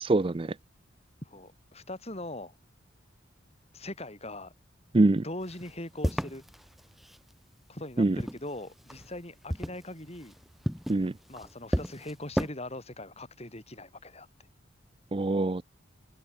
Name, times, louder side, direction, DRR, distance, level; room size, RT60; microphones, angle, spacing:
voice 1, 0.1-0.5 4.9-5.2 8.0-8.2 10.9-11.1 15.1-15.6, right 2 dB, 25° right, 0.5 m, -24 dB
voice 2, 1.2-2.5 3.7-4.5 5.2-6.4 7.7-10.3 11.3-14.3, left 1 dB, 30° left, 5.9 m, -41 dB
sound 1, 5.4-7.3 7.9-9.2 9.5-12.5, equal, ahead, 5.5 m, -34 dB
head